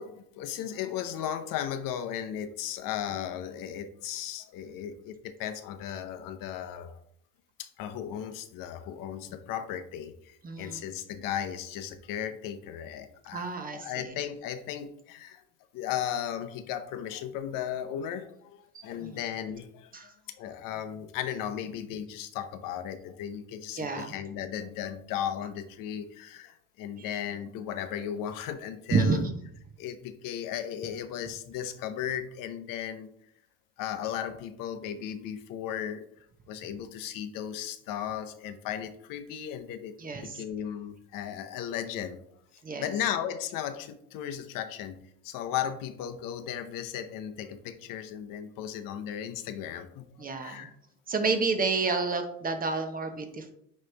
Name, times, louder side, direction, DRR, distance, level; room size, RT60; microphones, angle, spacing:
voice 1, 0.0-6.9 7.6-15.4 15.7-20.1 20.4-29.2 29.8-33.1 33.8-36.0 36.5-42.2 42.8-45.0 45.2-50.7, left 9 dB, 55° left, 9 dB, 0.7 m, -36 dB
voice 2, 10.4-10.8 13.3-14.1 18.7-19.2 19.9-20.1 23.8-24.1 27.0-27.1 28.9-29.4 40.0-40.4 42.6-42.9 50.2-50.7 51.1-53.5, right 4 dB, 20° right, 6 dB, 0.8 m, -30 dB
9.0 x 3.1 x 3.3 m, 0.71 s
supercardioid pair, 120°, 38 cm